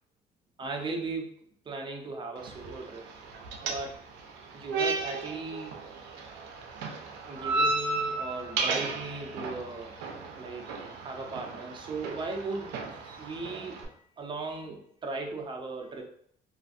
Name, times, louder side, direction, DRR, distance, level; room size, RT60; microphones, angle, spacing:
voice 1, 0.6-3.1 3.6-4.0 4.5-5.7 7.3-9.9 10.4-16.0, right 3 dB, 30° right, 1 dB, 0.6 m, -37 dB
sound 1, 2.4-13.8, right 3 dB, 85° right, 0.5 m, -34 dB
2.5 x 2.4 x 2.5 m, 0.66 s
cardioid pair, 110°, 17 cm